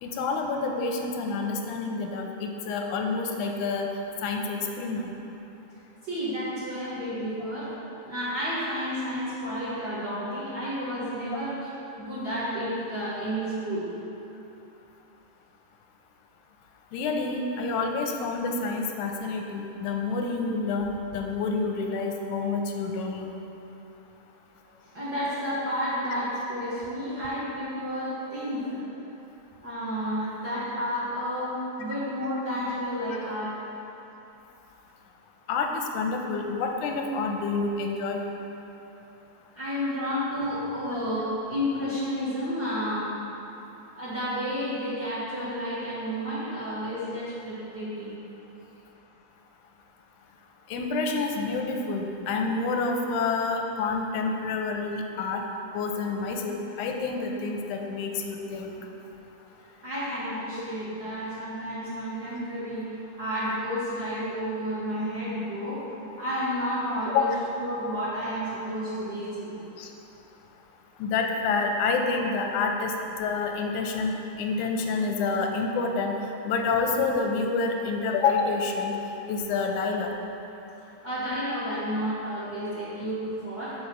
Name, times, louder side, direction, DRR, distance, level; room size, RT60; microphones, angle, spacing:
voice 1, 0.0-3.9 4.2-5.1 16.9-23.3 35.5-38.3 50.7-55.4 55.7-58.7 67.1-67.2 69.8-69.9 71.0-72.9 73.2-76.2 76.5-78.9 79.3-80.1, left 4 dB, 90° left, 3 dB, 2.1 m, -28 dB
voice 2, 6.0-7.7 8.0-11.7 12.0-13.9 24.9-28.8 29.6-33.5 39.5-43.1 44.0-48.1 59.8-65.8 66.2-67.3 67.6-69.6 81.0-83.9, equal, 45° right, -10 dB, 1.4 m, -31 dB
6.0 x 5.2 x 6.9 m, 3.0 s
omnidirectional pair, 3.5 m